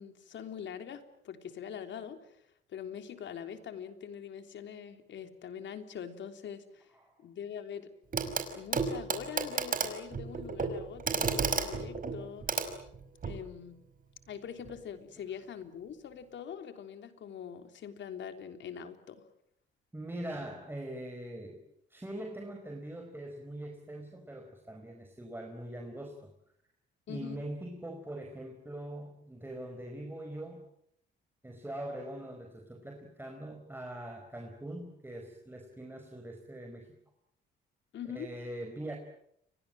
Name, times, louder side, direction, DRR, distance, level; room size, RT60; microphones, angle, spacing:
voice 1, 0.0-2.4 2.7-6.9 7.2-7.9 8.5-12.7 13.2-13.8 14.3-19.2 27.1-27.4 37.9-38.3, left 8 dB, 70° left, 8 dB, 3.5 m, -43 dB
Clock, 8.1-8.5 8.7-13.4 14.7-14.8, right 5 dB, 45° right, 5.4 m, -33 dB
voice 2, 19.9-21.6 21.9-26.3 27.1-30.7 31.4-36.9 38.1-39.0, right 1 dB, 10° right, 3 dB, 4.8 m, -42 dB
29.5 x 24.0 x 7.7 m, 0.73 s
cardioid pair, 90°, 20 cm